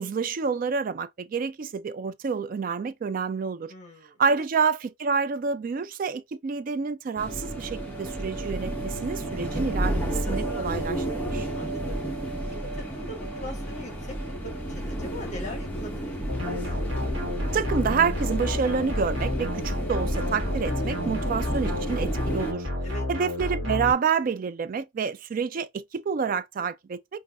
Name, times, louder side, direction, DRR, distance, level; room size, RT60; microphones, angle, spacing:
voice 1, 0.0-3.7 4.2-11.1 11.3-11.5 17.5-22.7 23.1-27.2, right 5 dB, 45° right, 0.3 m, -28 dB
voice 2, 3.7-4.5 11.5-12.0 12.8-14.2 14.4-16.1 20.9-21.3 22.8-23.1, left 1 dB, 35° left, 1.2 m, -41 dB
sound 1, 7.2-22.5, right 1 dB, 10° left, 0.9 m, -31 dB
sound 2, 16.3-23.9, left 1 dB, 75° right, 1.4 m, -30 dB
5.2 x 2.5 x 2.2 m
head